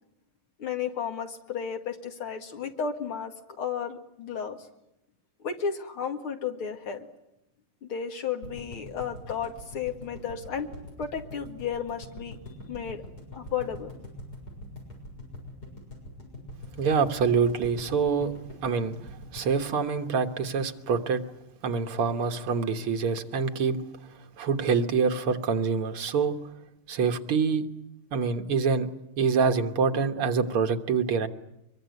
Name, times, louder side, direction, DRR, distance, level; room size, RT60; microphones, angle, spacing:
voice 1, 0.6-4.7 5.4-7.1 7.8-10.7 11.0-12.4 12.7-13.0 13.3-13.9, left 7 dB, 80° left, 2.9 m, -33 dB
sound 1, 8.4-20.6 20.9-21.0 21.2-21.3, left 1 dB, 45° left, 7.3 m, -43 dB
voice 2, 16.8-18.3 18.6-18.9 19.3-21.2 21.6-23.8 24.4-26.4 26.9-27.6 28.1-28.9 29.2-31.3, right 5 dB, 90° right, 2.4 m, -25 dB
24.0 x 23.0 x 9.5 m
omnidirectional pair, 2.3 m